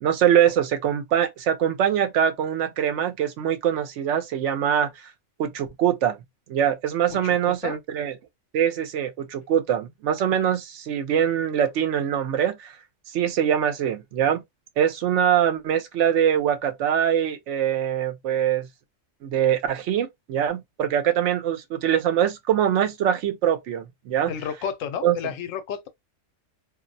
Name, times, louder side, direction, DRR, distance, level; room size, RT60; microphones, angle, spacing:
voice 1, 0.0-5.1 5.4-6.2 6.5-8.1 8.5-12.7 13.1-14.4 14.8-18.7 19.2-24.3 25.0-25.2, right 9 dB, 75° right, 0.9 m, -23 dB
voice 2, 7.1-7.8 24.3-25.9, left 8 dB, 90° left, 1.0 m, -32 dB
2.4 x 2.1 x 2.5 m
omnidirectional pair, 1.3 m